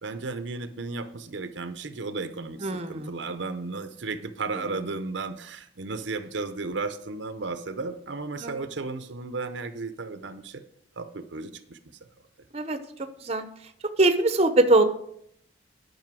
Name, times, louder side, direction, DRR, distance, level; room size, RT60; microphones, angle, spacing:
voice 1, 0.0-10.6 11.0-11.8, right 3 dB, 65° right, 10 dB, 0.7 m, -34 dB
voice 2, 2.6-3.1 8.4-8.6 12.5-12.8 13.2-13.5 14.0-14.8, right 2 dB, 35° right, 9 dB, 0.7 m, -22 dB
11.0 x 5.5 x 6.1 m, 0.71 s
head